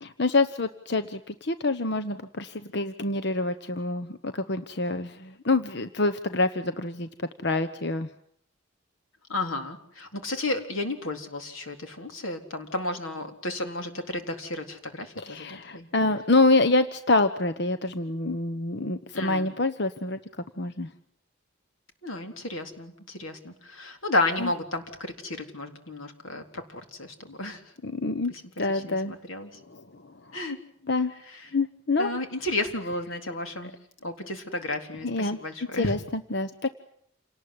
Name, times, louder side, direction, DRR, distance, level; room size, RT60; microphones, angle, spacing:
voice 1, 0.0-7.1 7.4-8.1 15.2-20.9 24.4-24.5 27.8-28.3 28.6-29.1 29.7-29.8 30.9-31.1 31.5-32.2 35.0-35.4 35.7-36.0 36.3-36.7, left 2 dB, 55° left, 11 dB, 1.1 m, -26 dB
voice 2, 9.3-15.9 19.1-19.5 22.0-27.6 28.3-28.4 28.7-29.6 30.3-30.6 31.3-31.5 32.0-33.7 34.0-35.9, left 2 dB, 90° left, 6 dB, 3.9 m, -32 dB
28.5 x 19.0 x 9.7 m, 0.67 s
head